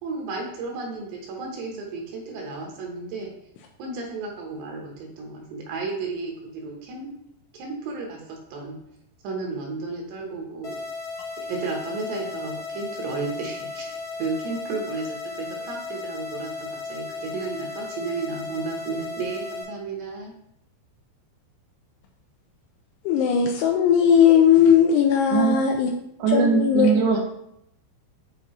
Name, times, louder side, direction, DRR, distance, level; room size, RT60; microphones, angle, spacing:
voice 1, 0.0-3.3 3.8-7.1 7.5-8.8 9.2-10.8 11.5-20.3, right 4 dB, 75° right, 0 dB, 2.9 m, -33 dB
sound 1, 10.6-19.6, left 4 dB, 65° left, 1.2 m, -35 dB
voice 2, 23.1-25.9 26.3-26.9, left 8 dB, 90° left, 1 dB, 2.3 m, -18 dB
voice 3, 26.2-27.2, right 5 dB, 90° right, -3 dB, 3.3 m, -20 dB
9.3 x 3.9 x 3.0 m, 0.75 s
omnidirectional pair, 5.4 m